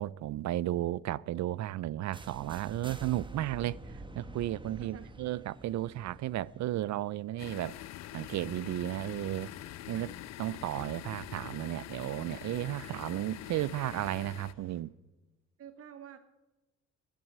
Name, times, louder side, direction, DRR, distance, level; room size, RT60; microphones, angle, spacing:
voice 1, 0.0-3.8 4.1-7.8 8.1-9.5 9.9-10.1 10.4-14.9, right 14 dB, 65° right, 0.5 m, -34 dB
sound 1, 2.1-8.0, right 2 dB, 15° right, 1.3 m, -48 dB
voice 2, 4.8-5.1 9.9-10.1 12.8-12.9 15.6-16.2, right 8 dB, 50° right, 0.9 m, -49 dB
sound 2, 7.4-14.5, left 14 dB, 60° left, 0.4 m, -45 dB
sound 3, 7.6-14.8, left 3 dB, 45° left, 2.7 m, -61 dB
13.5 x 8.1 x 9.5 m
cardioid pair, 90°, 30 cm